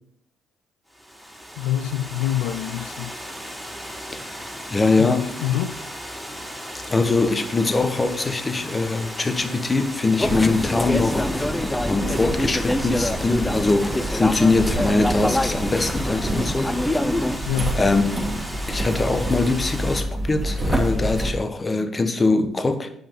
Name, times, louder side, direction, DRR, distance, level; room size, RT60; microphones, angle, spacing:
Water, 0.9-20.0, equal, ahead, 4.0 m, -36 dB
voice 1, 1.6-3.2 5.0-5.8 17.5-17.8, left 12 dB, 80° left, 0.5 m, -26 dB
voice 2, 4.1-4.4 4.7-5.3 6.8-11.3 11.9-16.8 17.7-18.4 18.7-22.9, left 3 dB, 30° left, 1.2 m, -22 dB
sound 1, 10.2-17.4, left 1 dB, 15° left, 0.7 m, -26 dB
sound 2, 10.2-21.3, right 1 dB, 25° right, 2.7 m, -29 dB
9.2 x 5.7 x 5.3 m
hypercardioid pair, 50°, 0 cm